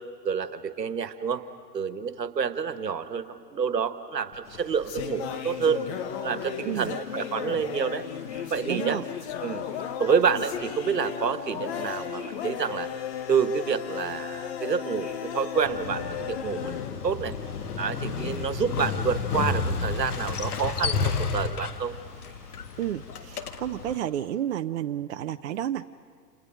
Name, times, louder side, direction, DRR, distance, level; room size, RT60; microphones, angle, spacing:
voice 1, 0.2-1.4 1.7-5.8 6.2-8.0 8.5-9.0 9.4-9.6 10.0-12.9 13.3-16.8 17.0-17.3 17.8-21.9, right 6 dB, 75° right, 11 dB, 1.5 m, -28 dB
sound 1, 4.3-17.8, left 9 dB, 40° left, 1.4 m, -35 dB
sound 2, 4.4-24.0, left 1 dB, 85° left, 7.1 m, -54 dB
voice 2, 8.7-9.0 22.8-25.8, right 11 dB, 45° right, 9 dB, 0.6 m, -31 dB
Motorcycle, 15.6-24.0, left 5 dB, 60° left, 1.6 m, -31 dB
29.5 x 29.0 x 5.3 m, 2.2 s
figure-of-eight pair, 110°, 50 cm